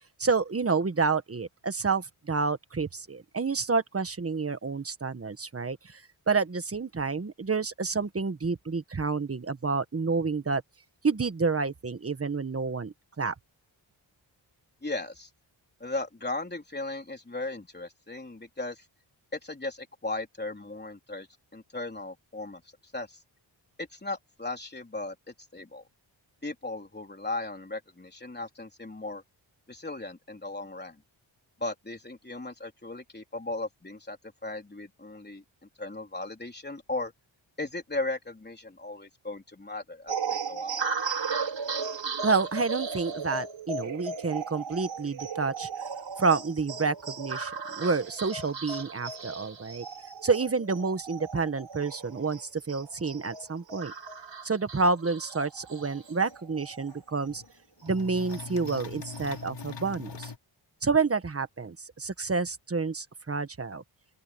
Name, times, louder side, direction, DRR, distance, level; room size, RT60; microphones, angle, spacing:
voice 1, 0.2-6.0 6.3-10.6 11.0-13.3 42.2-45.7 46.2-49.8 50.2-53.9 54.4-57.4 57.8-60.3 60.8-63.8, right 4 dB, 30° right, 1.4 m, -29 dB
voice 2, 14.8-15.3 15.8-18.9 19.3-21.3 21.5-22.6 22.9-23.2 23.8-25.8 26.4-29.2 29.7-31.0 31.6-34.2 34.4-35.4 35.8-37.1 37.6-40.8, left 2 dB, 20° left, 3.9 m, -37 dB
sound 1, 40.1-57.0 57.3-57.4 57.8-59.4, right 5 dB, 70° right, 5.7 m, -36 dB
sound 2, 55.9-56.0 56.3-56.4 56.9-57.5 57.9-60.4, left 5 dB, 60° left, 5.5 m, -41 dB
open air
wide cardioid pair, 100°, 47 cm